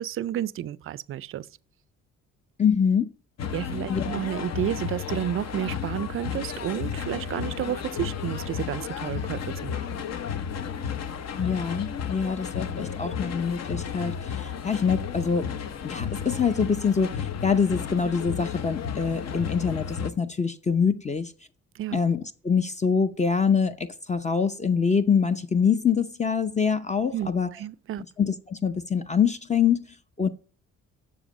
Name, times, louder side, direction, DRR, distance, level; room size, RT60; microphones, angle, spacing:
voice 1, 0.0-1.5 3.5-9.9 21.7-22.0 27.1-28.0, right 11 dB, 45° right, 0.4 m, -31 dB
voice 2, 2.6-3.1 3.9-4.2 11.4-15.5 15.8-21.3 21.9-27.5 28.2-29.9 30.2-30.3, left 6 dB, 25° left, 0.5 m, -25 dB
sound 1, 3.4-20.1, left 7 dB, 60° left, 0.7 m, -33 dB
7.2 x 6.6 x 4.9 m
cardioid pair, 90°, 30 cm